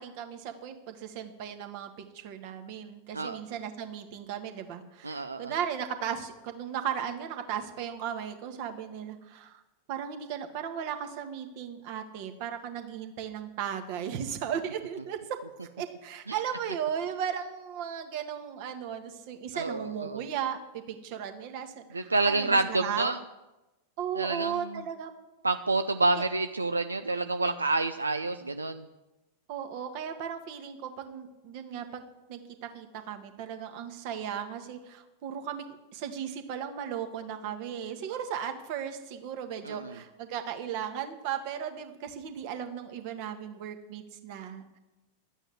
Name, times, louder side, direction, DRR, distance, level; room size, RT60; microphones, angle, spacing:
voice 1, 0.0-9.6 9.9-15.4 15.8-23.1 24.0-25.1 26.2-26.3 29.5-32.0 32.3-35.6 35.9-44.8, right 8 dB, 45° right, 6 dB, 1.6 m, -36 dB
voice 2, 5.0-5.5 19.5-20.2 21.9-23.2 24.2-24.6 25.4-28.8 39.6-40.0, right 3 dB, 80° right, 9 dB, 0.5 m, -28 dB
12.0 x 8.9 x 7.8 m, 1.0 s
figure-of-eight pair, 90°, 0 cm